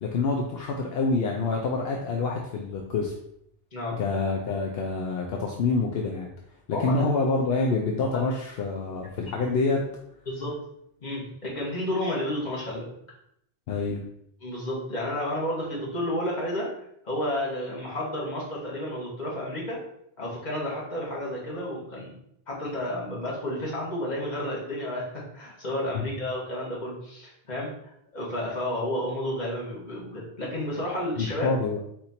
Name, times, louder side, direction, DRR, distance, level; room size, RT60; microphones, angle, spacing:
voice 1, 0.0-3.1 3.9-6.3 6.7-9.8 13.7-14.0 25.9-26.0 31.2-31.8, left 3 dB, 75° left, 0 dB, 0.8 m, -27 dB
voice 2, 6.7-7.1 8.1-8.3 9.4-9.5 10.3-10.5 11.0-12.9 14.4-16.7 17.0-19.8 20.2-22.1 22.5-27.7 28.1-31.5, left 1 dB, 45° left, -5 dB, 1.5 m, -31 dB
4.2 x 2.7 x 4.2 m, 0.74 s
omnidirectional pair, 1.0 m